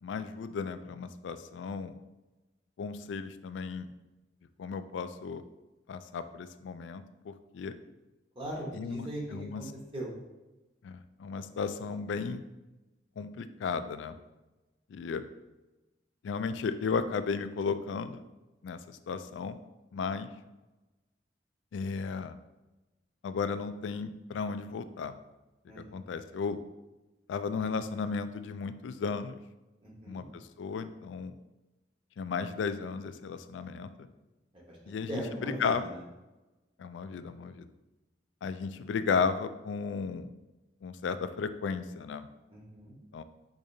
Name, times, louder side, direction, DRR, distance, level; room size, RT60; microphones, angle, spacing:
voice 1, 0.0-2.0 2.8-3.9 4.6-5.4 5.9-7.7 8.7-9.7 10.8-12.4 13.2-14.2 14.9-15.2 16.2-18.3 18.6-19.6 19.9-20.3 21.7-22.4 23.2-25.1 25.8-26.6 27.3-29.4 30.1-31.3 32.2-34.1 34.9-35.9 36.8-37.7 38.4-40.3 40.8-42.2 43.1-43.2, left 5 dB, 80° left, 11 dB, 0.3 m, -34 dB
voice 2, 8.4-10.1 25.7-25.9 29.8-30.3 34.7-35.7 42.5-42.9, right 1 dB, 30° right, -3 dB, 1.0 m, -39 dB
5.0 x 3.8 x 2.7 m, 1.1 s
head